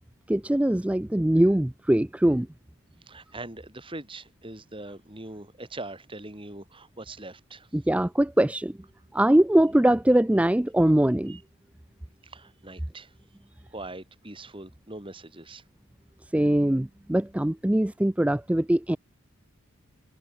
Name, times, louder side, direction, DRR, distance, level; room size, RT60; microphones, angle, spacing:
voice 1, 0.3-2.5 7.7-8.7 9.1-11.4 16.3-19.0, right 1 dB, 5° right, 0.3 m, -22 dB
voice 2, 3.1-7.7 11.3-11.4 12.2-13.1 13.7-15.6, right 2 dB, 25° right, 4.8 m, -42 dB
head